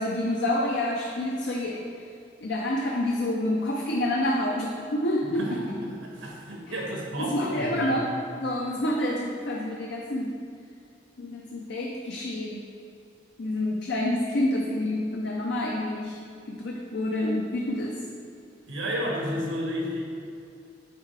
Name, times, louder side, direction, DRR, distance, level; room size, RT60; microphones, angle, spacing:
voice 1, 0.0-1.8 2.4-5.6 7.2-8.1 8.4-10.4 11.2-12.6 13.4-16.2 16.5-18.0, left 1 dB, 65° left, -1 dB, 0.6 m, -28 dB
voice 2, 5.3-8.0 18.7-20.1, equal, 90° right, -2 dB, 1.4 m, -32 dB
8.2 x 4.5 x 3.3 m, 2.5 s
head